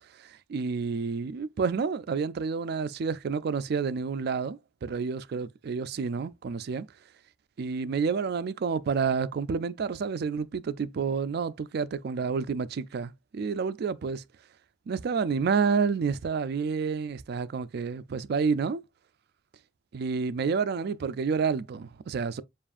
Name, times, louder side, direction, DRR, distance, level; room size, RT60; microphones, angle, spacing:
voice 1, 0.2-6.9 7.6-14.2 14.9-18.8 19.9-22.4, right 5 dB, 55° right, 0.4 m, -29 dB
7.1 x 2.5 x 2.5 m
head